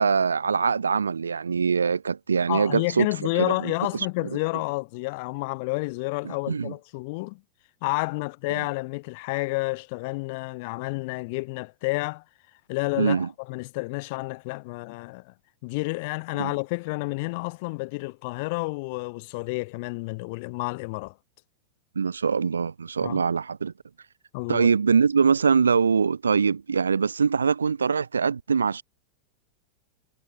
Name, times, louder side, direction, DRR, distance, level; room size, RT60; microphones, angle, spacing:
voice 1, 0.0-3.1 3.4-4.1 6.2-6.7 8.5-8.7 13.0-13.3 16.4-16.5 21.9-23.7 24.5-28.8, right 5 dB, 75° right, 1.1 m, -23 dB
voice 2, 2.5-7.4 7.8-12.2 12.7-15.3 15.6-21.1 23.0-23.2 24.3-24.7, left 27 dB, 50° left, 0.9 m, -30 dB
figure-of-eight pair, 90°, 0 cm